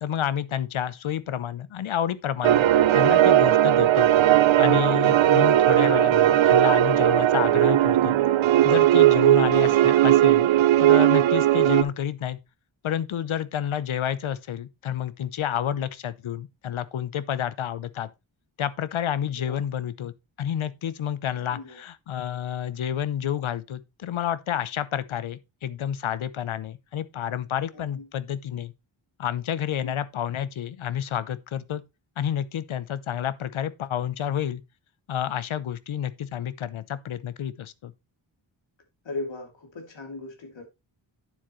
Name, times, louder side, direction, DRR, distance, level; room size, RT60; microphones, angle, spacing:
voice 1, 0.0-2.7 2.9-4.1 4.6-8.1 8.6-10.5 10.8-12.4 12.8-18.1 18.6-20.1 20.4-28.7 29.2-31.8 32.2-34.6 35.1-37.9, left 9 dB, 90° left, 0.8 m, -29 dB
sound 1, 2.4-11.8, right 13 dB, 80° right, 0.6 m, -18 dB
voice 2, 27.7-28.1 29.7-30.0 39.0-40.6, left 2 dB, 70° left, 2.9 m, -38 dB
9.3 x 7.6 x 3.1 m
wide cardioid pair, 175°, 46 cm